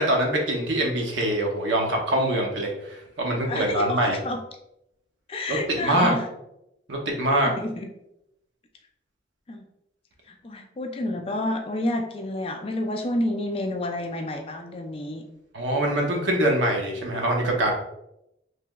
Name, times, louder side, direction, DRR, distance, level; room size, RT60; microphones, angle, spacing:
voice 1, 0.0-4.2 5.5-6.1 6.9-7.5 15.5-17.7, right 1 dB, 80° right, 0 dB, 0.7 m, -24 dB
voice 2, 3.4-4.4 5.3-6.3 7.4-7.9 9.5-9.6 10.3-15.2, left 1 dB, 30° left, 4 dB, 0.3 m, -29 dB
3.2 x 2.8 x 2.2 m, 0.83 s
head